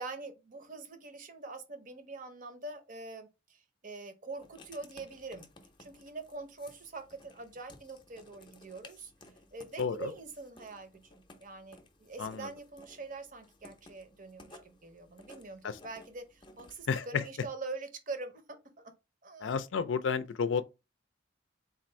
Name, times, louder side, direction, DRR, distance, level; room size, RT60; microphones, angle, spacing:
voice 1, 0.0-5.5 5.8-9.1 9.5-18.9 19.2-19.5, right 3 dB, 45° right, 0.7 m, -44 dB
Writing, 4.4-16.9, left 2 dB, 25° left, 0.6 m, -57 dB
voice 2, 9.8-10.1 12.2-12.5 15.6-15.8 16.9-17.2 19.4-20.6, left 6 dB, 75° left, 0.4 m, -31 dB
3.8 x 2.5 x 4.3 m
head